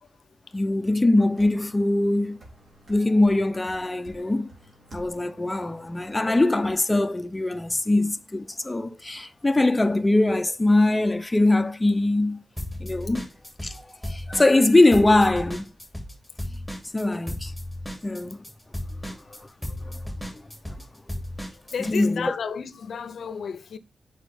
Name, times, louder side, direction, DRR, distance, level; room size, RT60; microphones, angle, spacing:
voice 1, 0.5-2.4 2.9-4.5 4.9-12.4 12.8-13.3 13.6-15.6 16.9-17.5 18.0-18.4 20.3-20.4 21.8-22.4, left 2 dB, 15° left, 0.6 m, -22 dB
sound 1, 1.3-6.7, right 1 dB, 55° right, 3.3 m, -51 dB
sound 2, 12.6-13.8 14.0-21.9, left 1 dB, 5° right, 2.8 m, -34 dB
voice 2, 21.7-23.8, left 6 dB, 75° left, 0.6 m, -32 dB
8.1 x 5.5 x 3.5 m
cardioid pair, 90°, 0 cm